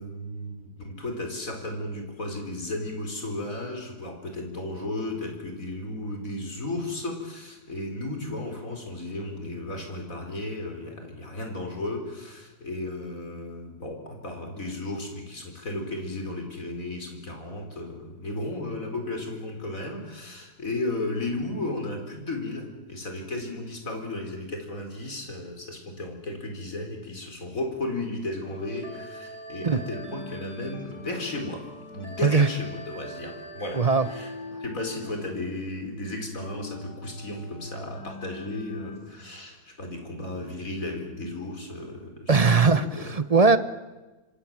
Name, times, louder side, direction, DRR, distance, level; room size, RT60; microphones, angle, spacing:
voice 1, 0.0-34.3 34.6-43.1, left 2 dB, 55° left, 3 dB, 4.8 m, -34 dB
sound 1, 28.4-39.0, left 1 dB, 75° left, 3.8 m, -42 dB
voice 2, 33.7-34.1 42.3-43.6, right 4 dB, 30° right, 13 dB, 0.9 m, -20 dB
26.0 x 25.5 x 7.5 m, 1.1 s
omnidirectional pair, 1.7 m